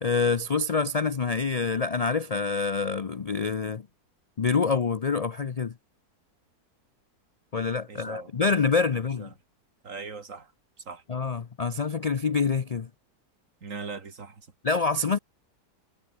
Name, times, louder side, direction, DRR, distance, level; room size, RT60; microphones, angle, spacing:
voice 1, 0.0-3.9 4.4-5.7 7.5-9.3 11.1-12.9 14.6-15.2, left 4 dB, 70° left, 0.3 m, -26 dB
voice 2, 7.9-8.3 9.2-9.3 9.8-10.5 10.9-11.0 13.6-14.4, right 4 dB, 55° right, 2.5 m, -39 dB
omnidirectional pair, 1.6 m